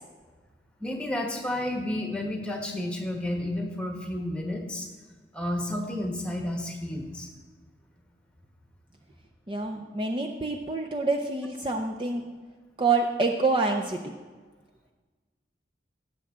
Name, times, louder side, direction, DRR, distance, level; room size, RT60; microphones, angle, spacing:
voice 1, 0.8-4.9 5.3-7.3, left 1 dB, 5° left, 2 dB, 1.2 m, -31 dB
voice 2, 9.5-12.2 12.8-14.0, right 3 dB, 25° right, 3 dB, 0.5 m, -27 dB
17.0 x 7.4 x 3.6 m, 1.4 s
head